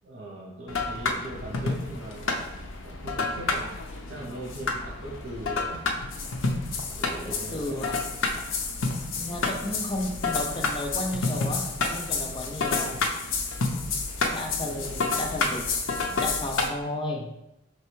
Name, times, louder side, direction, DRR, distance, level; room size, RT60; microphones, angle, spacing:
voice 1, 0.0-2.3 2.8-3.7 4.1-5.8 6.9-7.8 13.7-14.1 14.6-15.0, right 2 dB, 75° right, -4 dB, 0.8 m, -40 dB
sound 1, 0.7-16.7, left 3 dB, 80° left, 0.5 m, -29 dB
voice 2, 7.2-8.0 9.1-13.0 14.3-15.6 16.1-17.2, left 1 dB, 25° left, 2 dB, 0.5 m, -33 dB
4.4 x 3.2 x 3.1 m, 0.89 s
head